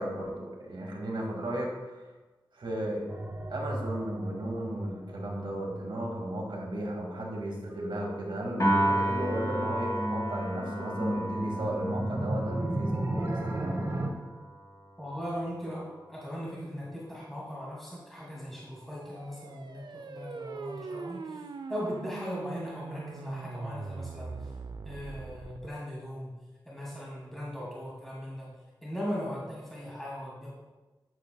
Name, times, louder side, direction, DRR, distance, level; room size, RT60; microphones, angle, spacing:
voice 1, 0.0-2.0 2.5-3.0 3.5-14.0, right 1 dB, 85° right, -1 dB, 1.9 m, -35 dB
sound 1, 3.1-14.1, right 1 dB, 35° right, 1.2 m, -35 dB
Piano, 8.6-15.0, right 1 dB, 40° left, 2.3 m, -32 dB
voice 2, 15.0-24.5 24.8-26.3 26.7-28.5 28.8-30.5, equal, 5° left, -7 dB, 2.4 m, -38 dB
sound 2, 18.8-25.7, right 4 dB, 60° right, 0.5 m, -41 dB
11.5 x 7.4 x 2.3 m, 1.2 s
wide cardioid pair, 110°, 8 cm